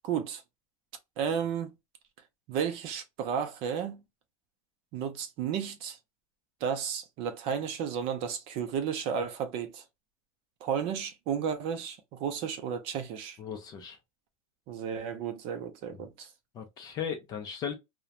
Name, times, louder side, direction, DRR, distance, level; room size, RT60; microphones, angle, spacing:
voice 1, 0.0-0.4 1.2-1.7 2.5-4.0 4.9-6.0 6.6-9.8 10.6-13.4 14.7-16.3, right 7 dB, 35° right, 0.5 m, -33 dB
voice 2, 13.4-14.0 16.0-16.1 16.5-17.7, left 7 dB, 20° left, 0.4 m, -37 dB
2.9 x 2.1 x 2.3 m
supercardioid pair, 170°, 18 cm